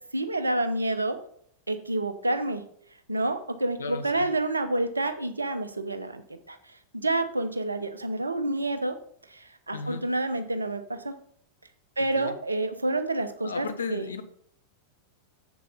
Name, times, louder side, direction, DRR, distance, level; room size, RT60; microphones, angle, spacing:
voice 1, 0.1-1.2 1.7-2.6 3.1-6.6 6.9-9.0 9.3-11.1 12.0-14.1, right 2 dB, 80° right, 9 dB, 1.0 m, -28 dB
voice 2, 3.8-4.3 9.7-10.0 12.1-12.3 13.4-14.2, left 4 dB, 70° left, 8 dB, 1.1 m, -35 dB
7.4 x 7.3 x 4.0 m, 0.62 s
figure-of-eight pair, 90°, 0 cm